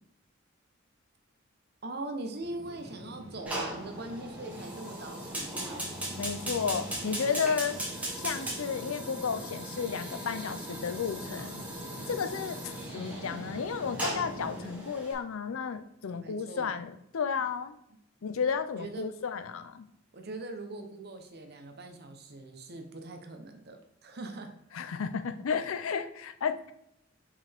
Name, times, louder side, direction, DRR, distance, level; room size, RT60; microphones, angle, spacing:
voice 1, 1.8-6.0 16.1-16.8 18.8-19.2 20.1-24.5, right 2 dB, 50° right, 5 dB, 0.8 m, -41 dB
sound 1, 2.4-14.7, equal, 75° right, 2.1 m, -44 dB
Fire, 3.5-15.1, right 1 dB, 5° right, 1.3 m, -39 dB
voice 2, 6.2-7.8 8.2-11.6 12.1-17.7 18.2-19.9 24.7-26.7, left 6 dB, 80° left, 10 dB, 0.5 m, -33 dB
5.5 x 4.9 x 3.5 m, 0.78 s
head